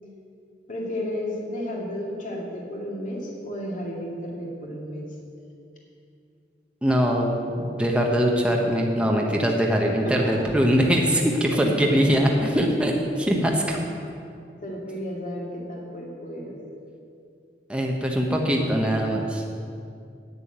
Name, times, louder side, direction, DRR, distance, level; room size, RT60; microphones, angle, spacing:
voice 1, 0.7-5.1 9.4-9.7 10.0-10.3 11.5-12.2 14.6-16.6, left 1 dB, 45° left, -2 dB, 2.3 m, -33 dB
voice 2, 6.8-13.8 17.7-19.4, equal, 5° right, 0 dB, 0.9 m, -22 dB
9.0 x 7.0 x 8.8 m, 2.5 s
head